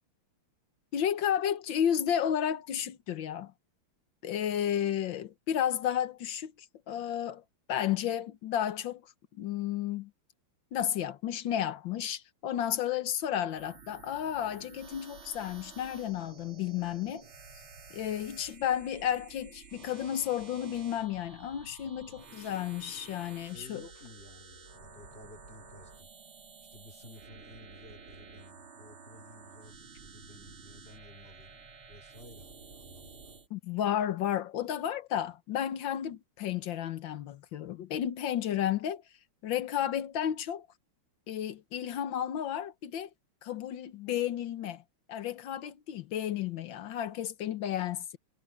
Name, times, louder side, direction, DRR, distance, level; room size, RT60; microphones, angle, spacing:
voice 1, 0.9-3.5 4.2-6.5 6.9-7.4 7.7-10.1 10.7-17.3 17.9-23.8 33.5-39.0 39.4-40.7 41.3-43.1 43.4-44.8 45.1-48.2, left 10 dB, 65° left, 1.7 m, -32 dB
sound 1, 13.5-33.5, right 5 dB, 75° right, 4.0 m, -52 dB
voice 2, 22.1-22.7 23.4-26.1 26.7-33.4, left 1 dB, 25° left, 3.7 m, -54 dB
omnidirectional pair, 2.4 m